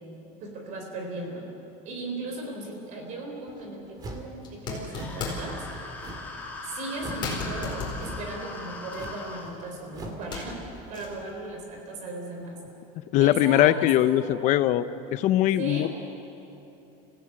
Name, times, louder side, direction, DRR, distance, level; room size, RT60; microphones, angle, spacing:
voice 1, 0.4-1.5 1.8-5.7 6.6-10.6 10.9-12.6 13.2-14.5 15.6-15.9, right 2 dB, 45° right, 2 dB, 4.1 m, -37 dB
sound 1, 3.5-3.7 4.4-5.6 6.2-6.4 6.8-6.9 7.2-9.7 10.0-11.3, left 4 dB, 25° left, 4.4 m, -36 dB
sound 2, 4.0-4.3 4.9-5.2 6.0-6.4 7.0-7.3 8.0-8.3 8.9-9.3 9.9-10.2, right 1 dB, 20° right, 2.1 m, -40 dB
sound 3, 4.9-9.5, left 3 dB, 10° left, 2.9 m, -40 dB
voice 2, 13.0-14.9 15.1-15.9, left 13 dB, 45° left, 14 dB, 0.7 m, -21 dB
26.0 x 16.0 x 8.8 m, 3.0 s
cardioid pair, 170°, 18 cm